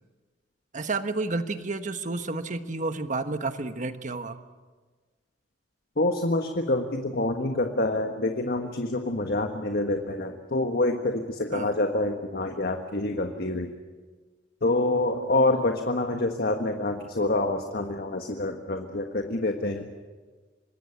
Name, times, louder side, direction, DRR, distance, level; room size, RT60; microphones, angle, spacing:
voice 1, 0.7-4.4 11.5-11.7, right 3 dB, 45° right, 8 dB, 1.4 m, -30 dB
voice 2, 6.0-13.7 14.6-19.9, left 2 dB, 60° left, 4 dB, 1.5 m, -27 dB
25.5 x 20.5 x 7.2 m, 1.4 s
head